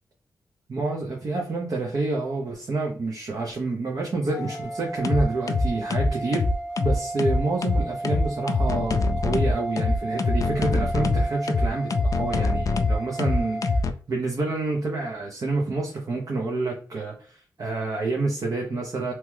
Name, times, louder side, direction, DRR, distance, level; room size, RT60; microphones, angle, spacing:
voice 1, 0.7-6.4 6.8-13.6 14.1-19.1, right 3 dB, 60° right, 0 dB, 0.7 m, -28 dB
sound 1, 4.3-4.6 5.0-13.9, left 3 dB, 55° left, 0.3 m, -23 dB
sound 2, 4.5-13.8, right 2 dB, 10° right, 0.6 m, -34 dB
2.9 x 2.3 x 3.2 m, 0.41 s
cardioid pair, 80°, 7 cm